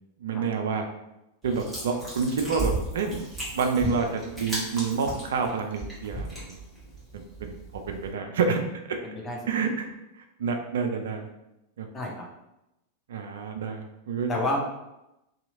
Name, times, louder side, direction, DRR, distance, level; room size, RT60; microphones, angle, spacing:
voice 1, 0.2-0.9 1.4-3.2 3.5-6.6 7.1-7.6 7.9-8.6 8.9-9.0 9.5-9.9 10.4-11.3 11.8-11.9 13.1-14.3, right 5 dB, 60° right, 4 dB, 0.4 m, -28 dB
sound 1, 1.4-8.1, right 1 dB, 5° right, 1.3 m, -35 dB
voice 2, 9.0-9.4 11.9-12.3 14.3-14.6, left 1 dB, 20° left, -2 dB, 0.6 m, -29 dB
2.8 x 2.7 x 2.5 m, 0.90 s
figure-of-eight pair, 90°, 0 cm